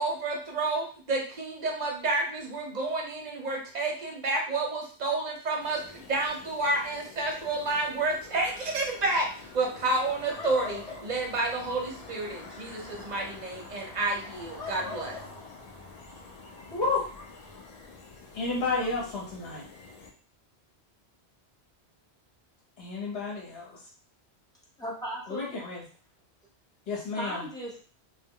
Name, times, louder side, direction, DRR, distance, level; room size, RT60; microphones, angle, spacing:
voice 1, 0.0-9.3 9.5-15.2, right 2 dB, 45° right, 0 dB, 0.7 m, -30 dB
sound 1, 5.6-20.1, left 3 dB, 55° left, 0.4 m, -45 dB
voice 2, 16.7-17.1 18.3-19.7 22.8-23.8 25.3-25.8 26.9-27.4, left 3 dB, 70° left, -4 dB, 1.0 m, -31 dB
voice 3, 24.8-25.6 27.1-27.8, equal, 5° left, -4 dB, 0.6 m, -36 dB
2.2 x 2.0 x 3.5 m, 0.41 s
omnidirectional pair, 1.1 m